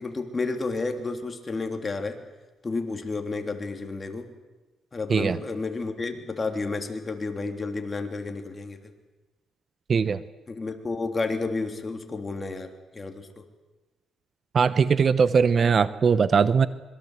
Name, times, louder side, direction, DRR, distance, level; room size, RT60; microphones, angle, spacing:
voice 1, 0.0-2.2 2.6-4.3 4.9-8.8 10.5-13.4, left 3 dB, 30° left, 5 dB, 3.3 m, -31 dB
voice 2, 9.9-10.2 14.5-16.7, right 6 dB, 45° right, 15 dB, 0.9 m, -20 dB
25.5 x 22.5 x 8.1 m, 1.2 s
cardioid pair, 90°, 0 cm